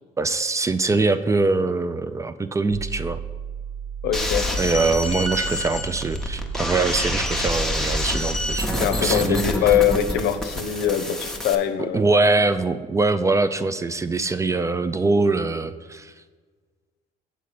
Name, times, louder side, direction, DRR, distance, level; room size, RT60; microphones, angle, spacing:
voice 1, 0.2-3.2 4.6-9.4 11.9-16.1, right 3 dB, 20° right, 12 dB, 0.3 m, -23 dB
sound 1, 2.7-9.2, right 7 dB, 85° right, 1.0 m, -34 dB
voice 2, 4.0-4.5 8.8-12.0, left 9 dB, 80° left, 9 dB, 0.7 m, -22 dB
sound 2, 4.1-11.6, left 1 dB, 5° left, 0.8 m, -27 dB
7.7 x 3.9 x 6.6 m, 1.5 s
cardioid pair, 110°, 17 cm